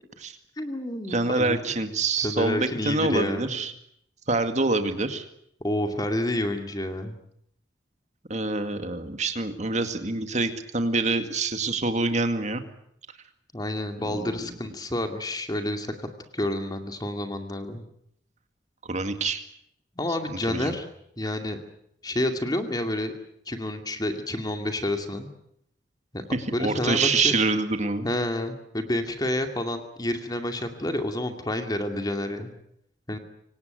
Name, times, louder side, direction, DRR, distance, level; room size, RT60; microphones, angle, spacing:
voice 1, 0.6-1.6 2.2-3.6 5.6-7.2 13.5-15.9 16.3-17.8 20.0-20.9 21.2-21.6 22.0-23.1 23.5-25.3 26.1-26.2 26.5-27.3 28.0-32.5 33.1-33.2, left 1 dB, 20° left, 6 dB, 2.4 m, -29 dB
voice 2, 1.1-3.7 4.3-5.2 8.3-12.6 14.0-14.6 18.9-19.4 20.3-20.7 26.3-28.1, right 3 dB, 40° right, 8 dB, 2.1 m, -26 dB
25.0 x 18.5 x 9.2 m, 0.72 s
head